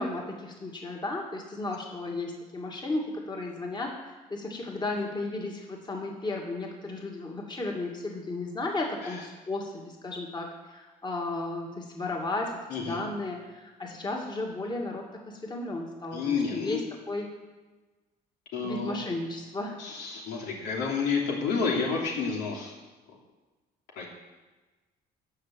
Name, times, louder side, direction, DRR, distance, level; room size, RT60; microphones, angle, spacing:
voice 1, 0.0-16.8 17.1-17.3 18.6-19.8, left 2 dB, 25° left, 0 dB, 2.3 m, -34 dB
voice 2, 16.1-16.8 18.5-19.0 19.8-22.7 24.0-24.1, left 5 dB, 85° left, -2 dB, 3.0 m, -30 dB
14.5 x 5.8 x 7.7 m, 1.2 s
cardioid pair, 110°, 17 cm